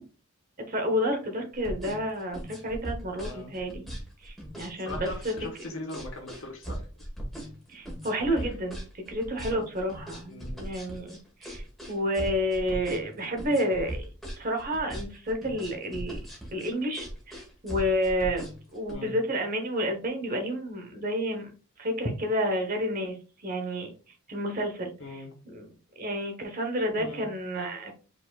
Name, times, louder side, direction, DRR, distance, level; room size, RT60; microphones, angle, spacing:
voice 1, 0.7-3.9 4.2-5.3 7.7-14.1 14.4-16.2 16.5-18.4 18.7-21.5 21.8-23.9 24.3-25.7 26.0-27.9, equal, 40° right, 4 dB, 1.1 m, -30 dB
sound 1, 1.5-18.9, right 1 dB, ahead, 1.3 m, -39 dB
voice 2, 3.2-3.6 4.8-6.9 8.3-8.5 9.5-9.7 10.3-10.7 18.9-19.2 25.0-25.3 27.0-27.3, left 2 dB, 60° left, 0 dB, 1.3 m, -41 dB
5.1 x 4.2 x 2.3 m, 0.35 s
head